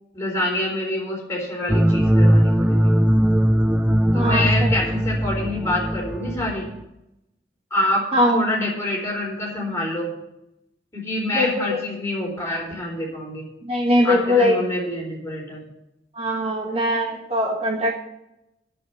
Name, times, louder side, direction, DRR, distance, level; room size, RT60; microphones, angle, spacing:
voice 1, 0.1-2.9 4.1-6.7 7.7-8.1 8.3-10.1 10.9-13.5 14.0-15.6, left 1 dB, 15° left, -3 dB, 4.1 m, -26 dB
sound 1, 1.7-6.8, equal, 5° right, 0.5 m, -19 dB
voice 2, 4.1-4.8 8.1-8.5 11.3-11.8 13.6-14.6 16.1-18.0, left 1 dB, 35° right, 1 dB, 1.4 m, -21 dB
8.3 x 7.4 x 8.4 m, 0.87 s
head